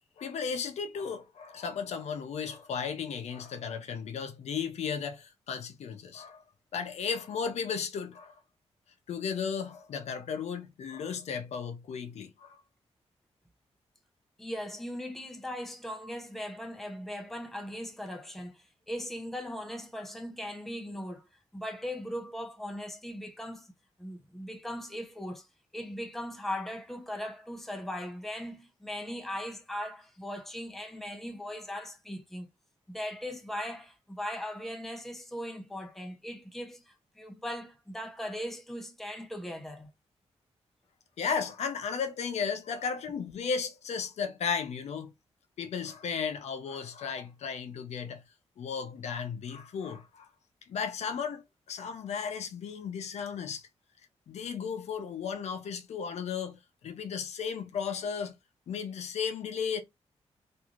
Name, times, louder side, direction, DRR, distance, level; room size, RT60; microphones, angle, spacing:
voice 1, 0.2-6.4 6.7-8.4 9.1-12.6 41.2-45.1 45.6-48.2 48.6-50.3 50.7-53.7 54.3-58.4 58.7-59.8, left 6 dB, 75° left, 0.6 m, -35 dB
voice 2, 14.4-21.2 21.5-23.7 24.0-25.5 25.7-32.5 32.9-39.9, equal, ahead, 0.6 m, -39 dB
3.1 x 2.5 x 2.4 m
wide cardioid pair, 145°, 11 cm